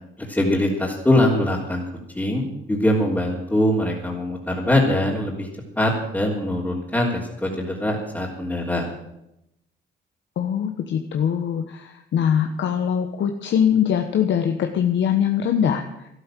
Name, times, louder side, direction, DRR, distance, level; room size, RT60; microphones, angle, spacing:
voice 1, 0.3-1.8 2.1-5.5 5.7-8.8, left 1 dB, 10° left, -6 dB, 3.3 m, -22 dB
voice 2, 10.4-16.1, left 8 dB, 65° left, 5 dB, 1.2 m, -22 dB
13.0 x 12.0 x 7.6 m, 0.85 s
cardioid pair, 90°, 20 cm